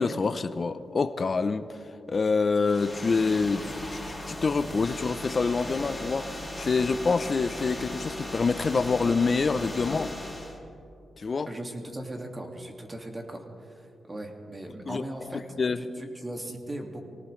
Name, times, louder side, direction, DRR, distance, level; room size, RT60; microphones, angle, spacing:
voice 1, 0.0-1.7 2.1-10.1 11.2-11.5 14.9-15.0 15.3-15.8, left 4 dB, 45° left, 11 dB, 0.6 m, -26 dB
sound 1, 2.6-10.6, left 1 dB, 5° left, 3.3 m, -37 dB
voice 2, 11.5-17.0, right 1 dB, 25° right, 2 dB, 2.2 m, -39 dB
24.5 x 18.0 x 3.2 m, 2.6 s
cardioid pair, 80°, 0 cm